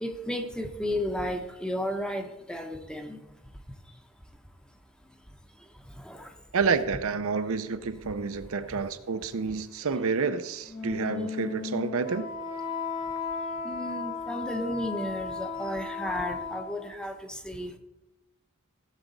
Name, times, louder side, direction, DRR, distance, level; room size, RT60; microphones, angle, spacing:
voice 1, 0.0-3.2 6.0-6.3 10.0-10.1 13.6-17.8, left 1 dB, 5° left, 6 dB, 0.8 m, -33 dB
voice 2, 6.5-12.3, right 5 dB, 65° right, 11 dB, 0.6 m, -29 dB
Wind instrument woodwind instrument, 10.6-16.9, left 4 dB, 60° left, 4.8 m, -35 dB
15.5 x 7.2 x 4.0 m, 0.97 s
head